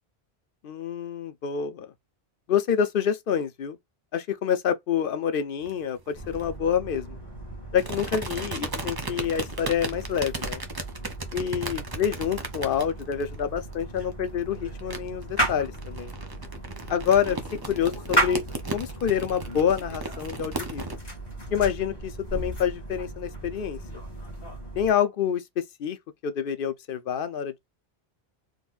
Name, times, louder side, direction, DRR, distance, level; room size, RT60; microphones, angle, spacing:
voice 1, 0.6-1.9 2.5-3.8 4.1-7.2 7.7-10.6 11.3-16.1 16.9-17.4 17.7-18.4 18.7-20.8 21.5-23.8 24.8-26.0 26.2-27.5, left 8 dB, 60° left, 0.7 m, -27 dB
sound 1, 5.6-6.4 7.8-21.0, right 3 dB, 25° right, 0.6 m, -36 dB
sound 2, 6.1-24.9, right 1 dB, 25° left, 1.3 m, -35 dB
3.8 x 2.9 x 2.4 m
omnidirectional pair, 1.1 m